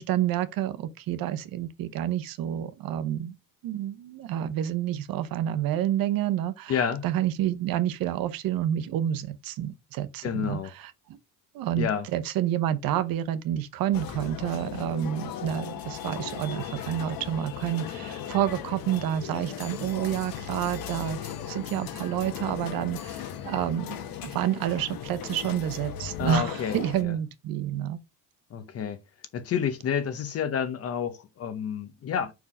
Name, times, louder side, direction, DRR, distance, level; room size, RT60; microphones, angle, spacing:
voice 1, 0.0-3.3 3.6-11.2 11.5-28.0, right 11 dB, 55° right, 0.9 m, -29 dB
voice 2, 6.7-7.0 10.2-10.7 11.8-12.1 26.2-26.8 28.5-29.0 29.3-32.3, left 8 dB, 35° left, 0.9 m, -29 dB
sound 1, 13.9-27.0, left 9 dB, 55° left, 1.2 m, -37 dB
5.7 x 4.7 x 4.8 m
cardioid pair, 165°, 41 cm